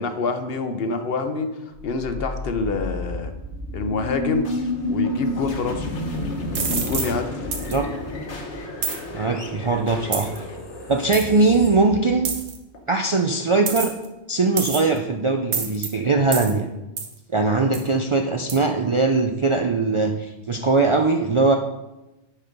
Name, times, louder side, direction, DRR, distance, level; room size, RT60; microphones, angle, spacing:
voice 1, 0.0-1.5 1.8-3.3 3.7-4.5 4.9-5.9 6.5-7.3, left 4 dB, 60° left, 8 dB, 0.9 m, -26 dB
sound 1, 1.7-12.8, left 1 dB, 85° left, 1.5 m, -31 dB
sound 2, 6.5-7.1 7.5-7.8 8.8-9.0 10.1-10.4 11.1-11.2 12.2-12.6 13.7-14.1 14.6-15.0 15.5-15.9 16.3-16.5 17.0-17.1 17.7-17.9 18.5-18.6, right 5 dB, 75° right, 1.3 m, -27 dB
voice 2, 9.1-10.3 10.9-12.3 12.9-13.9 14.3-16.7 17.3-21.5, right 3 dB, 45° right, 4 dB, 0.4 m, -20 dB
9.9 x 4.3 x 5.2 m, 0.99 s
omnidirectional pair, 1.1 m